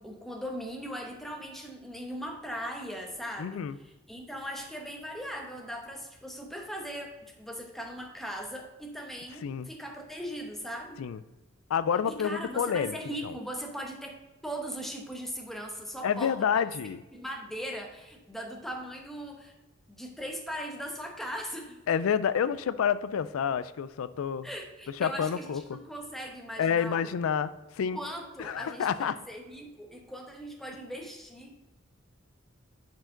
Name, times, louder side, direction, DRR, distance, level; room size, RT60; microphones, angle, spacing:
voice 1, 0.0-11.0 12.0-16.6 17.1-19.5 19.9-21.8 24.4-27.0 27.9-31.6, equal, ahead, 2 dB, 1.0 m, -39 dB
voice 2, 3.4-3.8 9.4-9.7 11.0-11.2 11.7-13.0 13.2-13.3 16.0-17.0 21.9-24.5 25.0-25.8 26.6-27.5 27.8-28.0 28.4-29.2, left 7 dB, 85° left, 14 dB, 0.4 m, -28 dB
10.5 x 4.7 x 3.8 m, 1.1 s
head